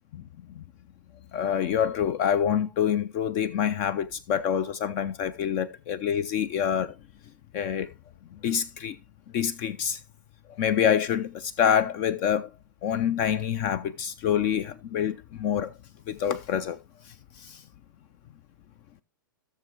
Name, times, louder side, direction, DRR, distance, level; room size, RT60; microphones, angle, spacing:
voice 1, 1.3-7.0 7.5-7.9 8.3-9.0 9.3-10.0 10.5-12.5 12.8-15.7 16.1-16.8 17.1-17.6, left 8 dB, 40° left, 0.5 m, -26 dB
15.5 x 6.6 x 3.0 m
figure-of-eight pair, 105°, 11 cm